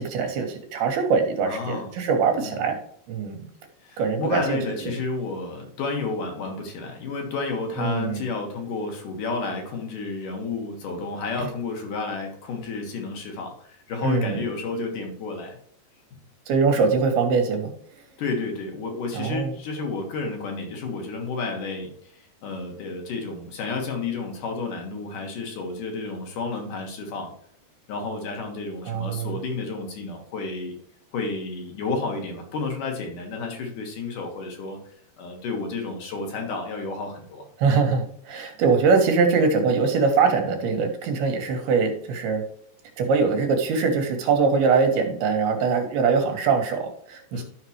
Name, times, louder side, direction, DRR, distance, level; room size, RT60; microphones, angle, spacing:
voice 1, 0.0-2.8 3.1-3.5 4.0-4.6 7.8-8.2 14.0-14.4 16.5-17.7 19.1-19.5 28.9-29.3 37.6-42.4 43.0-47.4, right 5 dB, 70° right, 4 dB, 3.3 m, -22 dB
voice 2, 1.4-1.9 2.4-2.6 3.8-15.6 18.2-27.3 27.9-30.8 31.1-34.8 35.2-37.5 47.3-47.4, left 3 dB, 60° left, 2 dB, 2.9 m, -31 dB
13.0 x 5.8 x 3.2 m, 0.63 s
omnidirectional pair, 4.8 m